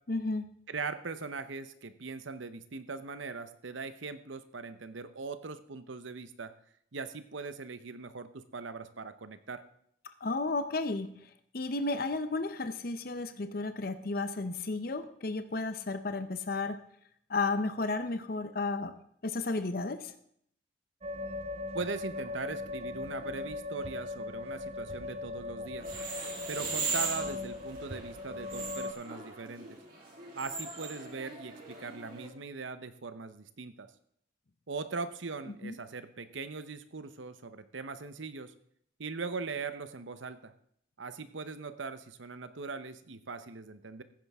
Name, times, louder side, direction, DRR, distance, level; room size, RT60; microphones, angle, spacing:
voice 1, 0.1-0.5 10.2-11.1 11.5-16.8 17.3-18.9 19.2-20.1 35.6-35.7, left 3 dB, 50° left, 10 dB, 0.7 m, -33 dB
voice 2, 0.7-6.5 6.9-9.6 21.7-25.9 26.5-29.8 30.4-33.9 34.7-38.5 39.0-40.5 41.0-44.0, right 4 dB, 75° right, 12 dB, 0.8 m, -40 dB
sound 1, 21.0-28.9, left 3 dB, 30° right, 0.5 m, -39 dB
sound 2, 25.8-32.3, right 4 dB, 45° right, 3.2 m, -39 dB
15.0 x 9.8 x 3.6 m, 0.68 s
head